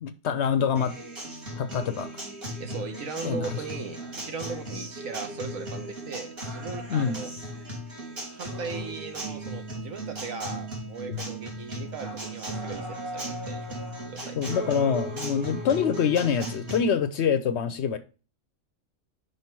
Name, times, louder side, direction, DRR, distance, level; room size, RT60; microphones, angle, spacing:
voice 1, 0.0-0.9 1.6-2.2 3.2-3.6 6.9-7.2 11.1-11.2 14.4-18.0, left 7 dB, 65° left, 0.8 m, -25 dB
Acoustic guitar, 0.8-16.8, right 1 dB, 45° right, 2.3 m, -36 dB
voice 2, 2.6-7.3 8.3-13.7 14.1-14.4, right 5 dB, 75° right, 1.5 m, -38 dB
5.6 x 5.1 x 4.5 m
omnidirectional pair, 1.4 m